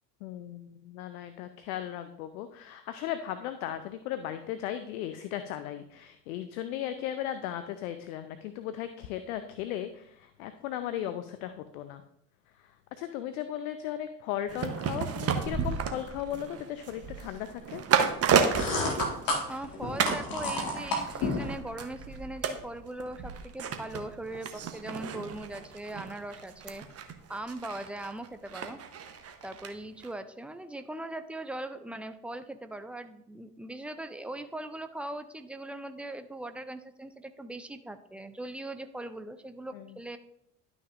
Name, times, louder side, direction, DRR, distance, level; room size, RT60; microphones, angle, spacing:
voice 1, 0.2-12.0 12.6-17.8 39.7-40.0, left 11 dB, 65° left, 10 dB, 0.7 m, -37 dB
sound 1, 14.5-19.7 20.0-20.3 20.6-29.7 30.0-30.1, right 6 dB, 30° right, 1.0 m, -32 dB
sound 2, 18.2-21.5, left 2 dB, 45° left, 1.9 m, -31 dB
voice 2, 19.5-28.8 29.4-40.2, right 1 dB, 5° right, 9 dB, 0.3 m, -40 dB
11.5 x 5.9 x 2.5 m, 0.74 s
figure-of-eight pair, 70°, 46 cm